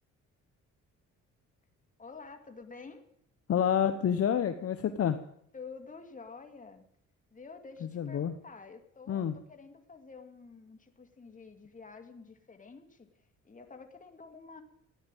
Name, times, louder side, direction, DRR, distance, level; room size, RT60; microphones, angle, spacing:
voice 1, 2.0-3.1 5.5-6.8 7.3-14.6, left 4 dB, 25° left, 6 dB, 2.3 m, -49 dB
voice 2, 3.5-5.2 7.8-8.3 9.1-9.3, left 8 dB, 50° left, 9 dB, 1.0 m, -28 dB
14.5 x 10.0 x 9.2 m, 0.71 s
cardioid pair, 90°, 30 cm